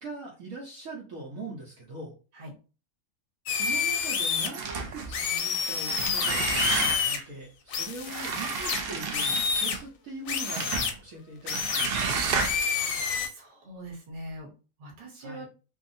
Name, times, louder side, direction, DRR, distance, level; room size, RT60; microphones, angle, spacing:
voice 1, 0.0-2.1 3.5-12.4 15.2-15.5, right 2 dB, 70° right, -2 dB, 1.1 m, -42 dB
sound 1, 3.5-4.5 5.1-7.2 7.7-9.8 10.3-10.9 11.5-11.9 12.4-13.3, left 6 dB, 70° left, 0.9 m, -28 dB
sound 2, 4.5-5.2 5.7-7.2 8.1-9.8 10.5-10.9 11.5-12.8, right 5 dB, 85° right, 0.5 m, -31 dB
voice 2, 12.8-14.5 14.8-15.5, right 1 dB, 45° right, -1 dB, 1.1 m, -43 dB
2.7 x 2.4 x 2.5 m, 0.33 s
omnidirectional pair, 1.6 m